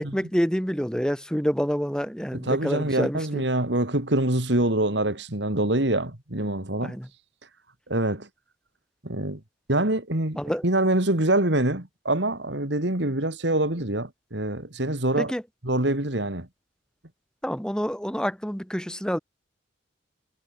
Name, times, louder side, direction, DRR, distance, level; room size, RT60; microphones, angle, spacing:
voice 1, 0.0-3.4 6.8-7.1 10.4-10.6 15.2-15.4 17.4-19.2, equal, 5° left, 5.5 m, -27 dB
voice 2, 2.3-7.0 7.9-8.3 9.0-9.4 9.7-15.3 15.6-16.5, right 1 dB, 65° right, 3.1 m, -25 dB
head